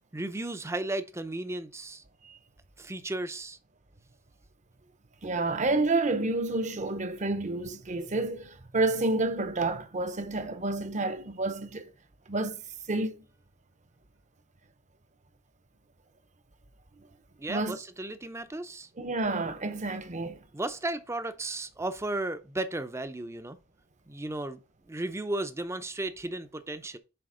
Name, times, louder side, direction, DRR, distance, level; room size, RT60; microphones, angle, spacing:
voice 1, 0.1-2.0 2.8-3.6 17.4-18.9 20.5-23.6 24.1-24.6 24.9-27.0, right 2 dB, 15° right, 0.6 m, -34 dB
voice 2, 5.2-11.9 12.3-12.6 12.9-13.2 17.0-17.1 17.5-17.8 19.0-20.4, right 2 dB, 40° right, 0.8 m, -29 dB
7.8 x 3.4 x 5.0 m
head